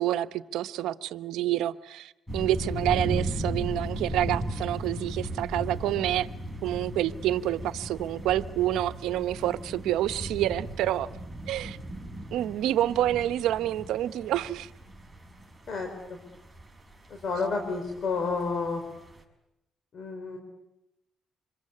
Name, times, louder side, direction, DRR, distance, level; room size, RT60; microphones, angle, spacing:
voice 1, 0.0-6.3 6.6-11.1 11.5-11.8 12.3-14.7, right 13 dB, 85° right, 0.9 m, -28 dB
sound 1, 2.3-19.2, right 1 dB, 5° right, 5.8 m, -37 dB
voice 2, 15.7-16.2 17.1-18.8 19.9-20.4, left 4 dB, 55° left, 4.5 m, -30 dB
26.5 x 23.0 x 8.6 m
cardioid pair, 90°, 0 cm